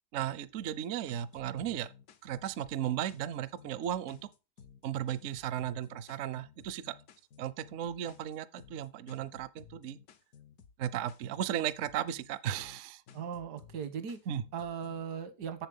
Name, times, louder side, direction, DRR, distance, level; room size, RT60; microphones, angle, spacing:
voice 1, 0.1-1.9 2.2-4.2 4.8-6.9 7.4-10.0 10.8-13.0 14.3-14.4, right 10 dB, 65° right, 0.8 m, -35 dB
sound 1, 0.7-15.1, left 7 dB, 70° left, 1.4 m, -57 dB
voice 2, 13.1-14.2 14.5-15.7, right 7 dB, 80° right, 1.6 m, -38 dB
7.3 x 7.3 x 5.3 m
omnidirectional pair, 1.7 m